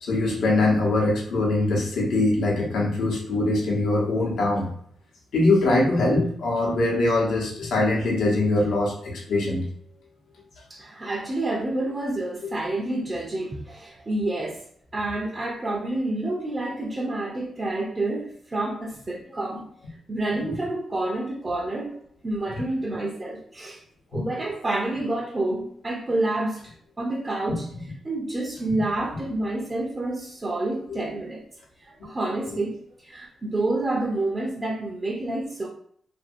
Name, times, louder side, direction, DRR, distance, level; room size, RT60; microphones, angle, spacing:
voice 1, 0.0-4.7 5.3-9.6 24.1-24.2 27.5-27.6 28.7-28.8, left 2 dB, 75° left, -2 dB, 0.8 m, -22 dB
voice 2, 10.7-14.6 14.9-19.7 20.1-22.0 22.2-23.8 24.1-27.7 28.0-31.4 31.9-35.7, right 2 dB, 35° right, -1 dB, 0.6 m, -28 dB
2.6 x 2.6 x 2.5 m, 0.63 s
supercardioid pair, 50°, 0 cm